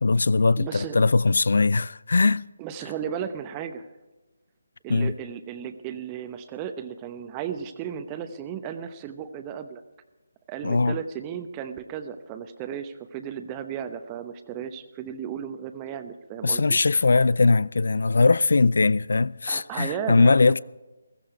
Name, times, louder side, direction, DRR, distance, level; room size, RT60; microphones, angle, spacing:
voice 1, 0.0-2.4 4.9-5.1 10.6-11.0 16.4-20.6, left 3 dB, 60° left, 0.4 m, -20 dB
voice 2, 0.6-1.0 2.6-3.9 4.8-9.8 10.5-16.8 19.5-20.6, right 8 dB, 20° right, 0.9 m, -35 dB
15.5 x 15.0 x 4.7 m
figure-of-eight pair, 150°, 0 cm